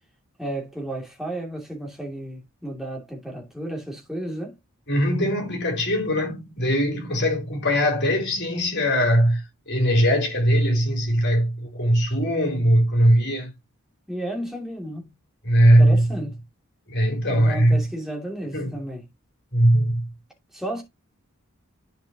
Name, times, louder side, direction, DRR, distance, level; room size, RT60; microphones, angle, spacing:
voice 1, 0.4-4.5 14.1-15.1 15.8-16.4 17.3-19.0 20.5-20.8, right 1 dB, ahead, 2.7 m, -33 dB
voice 2, 4.9-13.5 15.4-16.1 16.9-17.8 18.5-18.7 19.5-20.0, equal, 50° left, 3.8 m, -20 dB
10.0 x 5.3 x 3.0 m
head